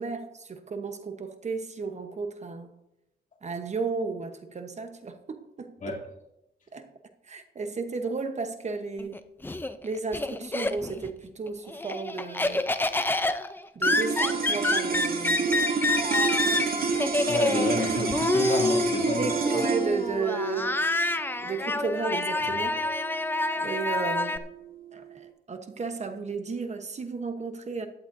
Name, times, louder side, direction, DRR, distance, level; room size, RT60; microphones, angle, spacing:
voice 1, 0.0-2.7 3.4-5.9 6.7-6.9 7.2-9.2 9.8-12.7 13.7-15.5 17.5-17.7 19.2-20.9 21.4-22.8 23.6-24.4 24.9-27.9, right 4 dB, 45° right, 1.0 m, -33 dB
Laughter, 9.0-11.1 11.5-24.4, left 2 dB, 10° left, 0.6 m, -28 dB
sound 1, 13.8-24.3, right 5 dB, 60° right, 1.8 m, -30 dB
voice 2, 17.3-19.6 22.5-22.6, left 3 dB, 50° left, 2.8 m, -30 dB
15.5 x 11.0 x 2.7 m
wide cardioid pair, 120°, 17 cm